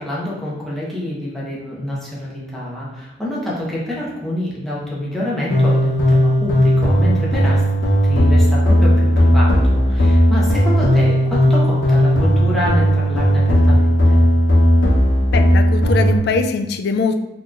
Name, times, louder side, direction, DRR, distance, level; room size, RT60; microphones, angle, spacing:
voice 1, 0.0-7.6 8.0-14.2, left 1 dB, ahead, -7 dB, 0.9 m, -26 dB
sound 1, 5.5-16.2, equal, 85° left, 0.7 m, -15 dB
voice 2, 15.3-17.2, left 4 dB, 60° left, 7 dB, 0.3 m, -21 dB
4.1 x 3.0 x 2.4 m, 0.99 s
head